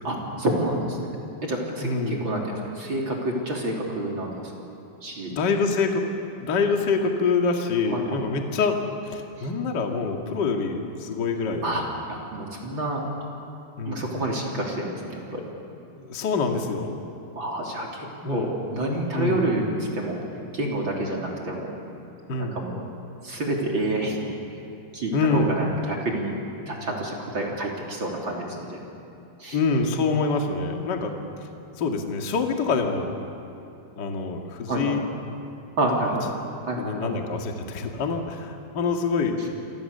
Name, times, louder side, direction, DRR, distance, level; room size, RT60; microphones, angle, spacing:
voice 1, 0.0-1.2 1.4-4.5 5.0-5.3 7.9-8.2 9.4-9.5 11.6-11.9 12.3-13.0 13.8-15.4 17.4-20.2 20.5-21.7 22.4-22.8 23.2-24.3 24.9-26.3 26.7-28.8 29.4-29.6 34.7-34.9 35.8-36.3 36.6-37.1, right 1 dB, 30° right, -2 dB, 3.5 m, -28 dB
voice 2, 1.8-2.3 5.3-6.1 6.4-8.8 9.0-11.9 13.8-14.1 15.9-16.9 18.2-18.5 19.1-19.4 22.3-22.6 25.1-25.5 29.5-31.1 31.8-33.1 33.9-35.0 36.8-39.4, left 4 dB, 35° left, 2 dB, 1.8 m, -25 dB
28.5 x 25.5 x 6.9 m, 2.8 s
omnidirectional pair, 4.8 m